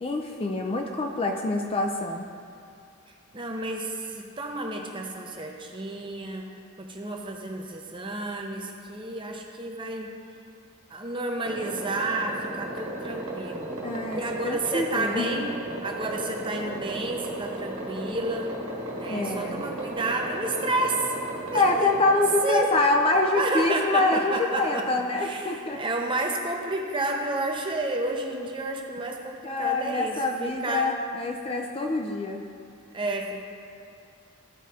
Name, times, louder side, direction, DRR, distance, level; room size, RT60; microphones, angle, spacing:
voice 1, 0.0-2.3 13.8-15.3 19.1-19.6 21.5-25.8 29.4-32.4, left 2 dB, 25° left, 2 dB, 0.4 m, -25 dB
voice 2, 3.3-6.5 6.8-10.1 10.9-13.7 14.1-15.5 15.8-18.5 19.0-21.2 21.5-21.9 22.4-22.7 23.3-24.9 25.2-30.9 32.9-33.4, right 2 dB, 20° right, 2 dB, 0.6 m, -31 dB
sound 1, 11.4-24.1, right 1 dB, 90° right, 1.5 m, -35 dB
13.5 x 4.8 x 2.8 m, 2.4 s
head